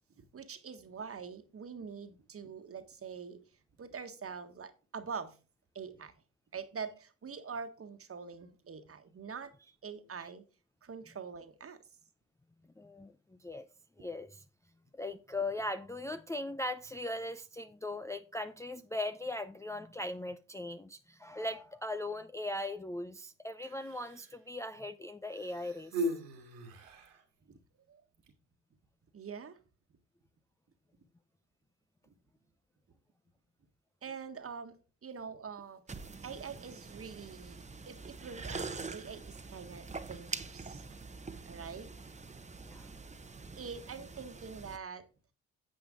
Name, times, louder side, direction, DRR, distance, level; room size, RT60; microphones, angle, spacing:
voice 1, 0.2-3.4 3.8-5.4 5.7-6.1 6.5-9.5 9.8-10.4 10.8-11.8 27.5-27.6 27.9-28.0 29.1-29.6 34.0-34.8 35.0-35.8 36.2-40.9 41.4-41.9 43.6-45.1, right 6 dB, 35° right, 1.5 m, -44 dB
voice 2, 12.8-13.7 14.0-14.4 14.9-26.1 42.7-42.9, left 1 dB, 10° left, 0.6 m, -39 dB
Human voice, 23.5-24.4 25.3-27.2 28.1-28.3, equal, 80° right, 2.2 m, -39 dB
sound 1, 35.9-44.8, right 4 dB, 20° right, 1.0 m, -45 dB
9.4 x 7.8 x 3.8 m
hypercardioid pair, 50°, 37 cm